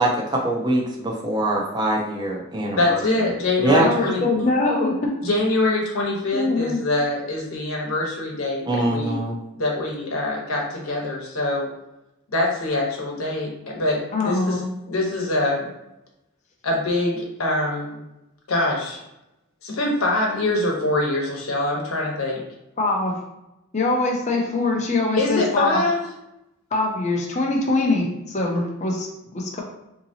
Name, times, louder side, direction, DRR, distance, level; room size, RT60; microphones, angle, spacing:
voice 1, 0.0-3.0 3.6-3.9 8.7-9.3, right 1 dB, 20° right, -2 dB, 0.5 m, -22 dB
voice 2, 2.8-4.2 5.2-9.2 9.6-11.7 12.3-15.7 16.6-18.0 18.5-19.0 19.6-22.4 25.2-26.0, left 2 dB, 85° left, -1 dB, 1.0 m, -24 dB
voice 3, 3.8-5.1 6.3-6.8 14.1-14.7 22.8-23.1 23.7-25.8 26.7-29.1 29.3-29.6, left 2 dB, 35° left, -1 dB, 0.6 m, -23 dB
3.8 x 2.8 x 2.7 m, 0.89 s
head